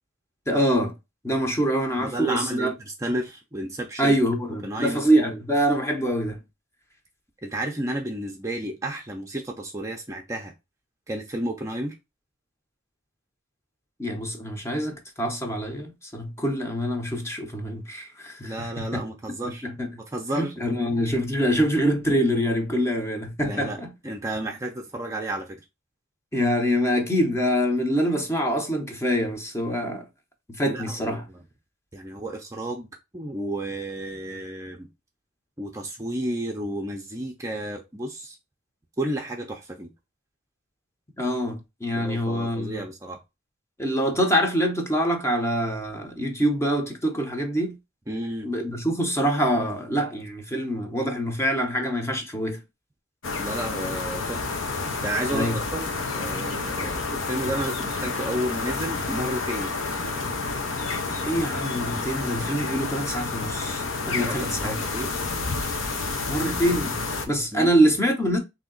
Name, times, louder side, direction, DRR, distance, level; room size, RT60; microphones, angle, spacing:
voice 1, 0.5-0.9 1.2-2.7 4.0-6.4 14.0-19.0 19.4-19.9 20.3-23.9 26.3-30.1 30.6-31.2 41.2-42.8 43.8-47.8 48.4-52.6 55.3-55.6 61.2-64.8 66.3-68.4, equal, 15° left, 0.8 m, -25 dB
voice 2, 2.0-4.2 4.6-5.1 7.4-10.5 11.1-11.9 18.4-19.7 20.0-20.5 23.4-25.6 30.7-31.4 31.9-32.9 33.1-34.9 35.6-38.4 39.0-39.9 41.9-43.2 48.1-48.5 53.4-54.4 55.0-59.7 64.2-65.1 67.5-67.7, right 1 dB, 15° right, 0.5 m, -32 dB
sound 1, 53.2-67.3, left 3 dB, 80° left, 0.8 m, -29 dB
3.4 x 2.8 x 3.8 m
head